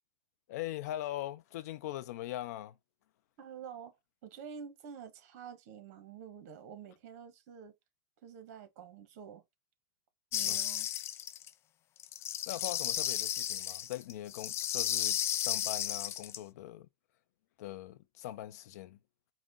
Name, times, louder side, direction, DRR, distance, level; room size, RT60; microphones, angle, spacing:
voice 1, 0.5-2.8 10.4-10.6 12.5-16.9 17.6-19.0, left 14 dB, 70° left, 0.6 m, -41 dB
voice 2, 3.4-3.9 4.2-7.7 8.2-9.4 10.3-10.9, right 7 dB, 60° right, 1.5 m, -48 dB
sound 1, 10.3-11.5 12.0-16.4, left 11 dB, 30° left, 0.4 m, -34 dB
4.9 x 2.4 x 3.9 m
supercardioid pair, 140°, 9 cm